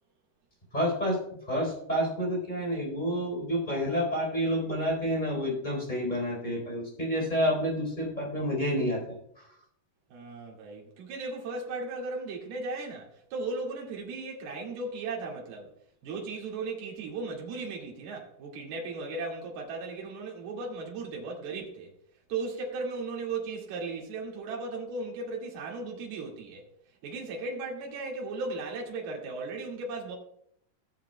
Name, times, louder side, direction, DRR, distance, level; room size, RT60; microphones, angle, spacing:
voice 1, 0.7-1.2 1.5-9.4, equal, 10° left, 3.3 m, -29 dB
voice 2, 10.1-15.7 16.0-21.9 22.3-26.6 27.0-30.2, right 3 dB, 70° right, 4.0 m, -36 dB
18.5 x 7.6 x 2.2 m
omnidirectional pair, 4.6 m